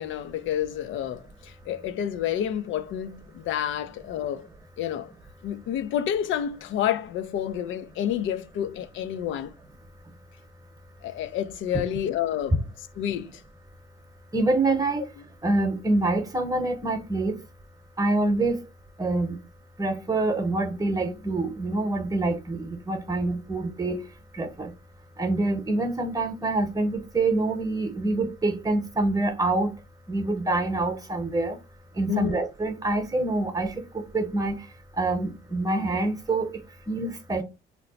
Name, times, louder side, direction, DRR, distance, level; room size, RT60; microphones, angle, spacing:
voice 1, 0.0-4.5 4.8-5.1 5.4-9.5 11.0-12.6 13.0-13.3 32.1-32.4, left 10 dB, 75° left, 0.4 m, -29 dB
voice 2, 14.3-15.0 15.4-17.4 18.0-18.6 19.0-19.4 19.8-24.0 24.3-24.7 25.2-29.7 30.1-31.6 32.0-34.6 35.0-37.4, right 2 dB, 20° right, 0.8 m, -26 dB
2.8 x 2.1 x 4.0 m
cardioid pair, 90°, 20 cm